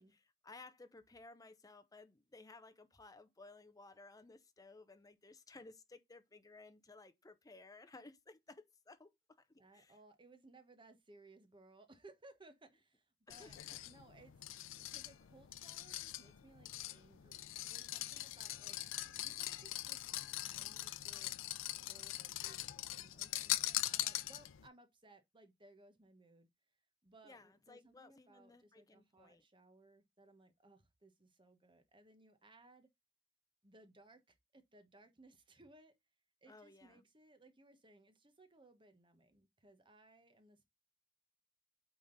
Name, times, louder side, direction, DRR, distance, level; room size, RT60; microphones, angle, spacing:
voice 1, 0.0-9.1 9.4-10.0 13.3-13.8 27.2-29.4 36.5-37.1, left 3 dB, 20° left, 0.6 m, -58 dB
voice 2, 9.6-14.4 14.9-18.8 19.2-21.3 21.9-26.5 27.0-32.9 33.6-35.9 36.4-40.6, right 2 dB, 25° right, 1.2 m, -63 dB
sound 1, 13.3-24.7, left 15 dB, 85° left, 0.4 m, -42 dB
8.9 x 3.7 x 3.9 m
head